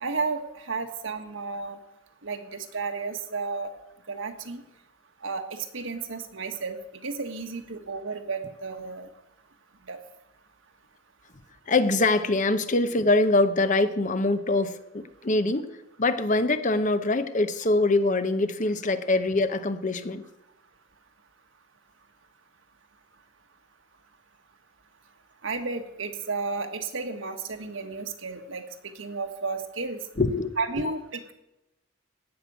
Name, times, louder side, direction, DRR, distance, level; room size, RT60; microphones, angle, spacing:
voice 1, 0.0-1.8 2.2-3.7 4.1-4.6 5.2-9.1 9.9-10.0 25.4-30.0 30.6-31.3, right 4 dB, 70° right, 6 dB, 1.5 m, -33 dB
voice 2, 11.7-15.7 16.0-20.2 30.2-30.5, left 2 dB, 40° left, 11 dB, 0.8 m, -24 dB
16.5 x 6.1 x 9.4 m, 0.93 s
head